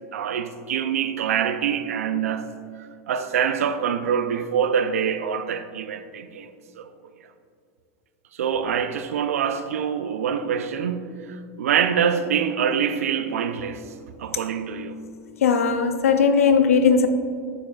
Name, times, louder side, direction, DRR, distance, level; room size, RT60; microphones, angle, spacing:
voice 1, 0.1-2.5 3.1-6.9 8.3-11.1 11.6-13.8 14.2-15.0, right 7 dB, 85° right, 0.4 m, -25 dB
voice 2, 15.4-17.1, left 6 dB, 90° left, 0.5 m, -18 dB
7.8 x 6.1 x 2.4 m
hypercardioid pair, 105°, 8 cm